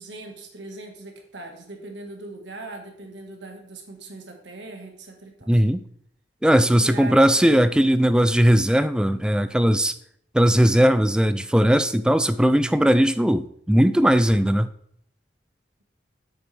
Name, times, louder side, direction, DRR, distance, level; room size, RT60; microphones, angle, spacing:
voice 1, 0.0-5.6 6.7-7.7, right 2 dB, 80° right, 3 dB, 1.5 m, -40 dB
voice 2, 5.5-5.8 6.4-10.0 10.3-14.7, equal, 5° right, 12 dB, 0.3 m, -18 dB
9.3 x 6.9 x 3.3 m, 0.66 s
head